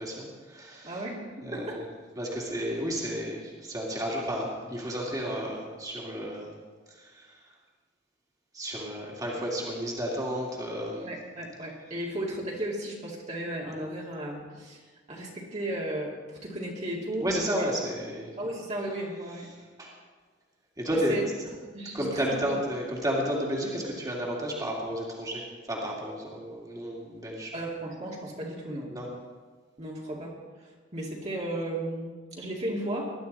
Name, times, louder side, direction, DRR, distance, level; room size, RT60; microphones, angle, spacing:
voice 1, 0.0-1.0 1.4-1.8 2.2-6.5 6.9-7.5 8.5-11.1 17.2-18.4 19.8-19.9 20.8-21.2 21.9-27.5 28.9-29.1, equal, 20° right, -3 dB, 2.5 m, -32 dB
voice 2, 0.8-1.8 11.0-17.3 17.6-17.7 18.4-19.5 20.9-21.2 21.7-22.6 27.5-28.9 29.8-33.1, right 1 dB, 35° right, -3 dB, 2.4 m, -35 dB
20.5 x 11.5 x 4.1 m, 1.4 s
head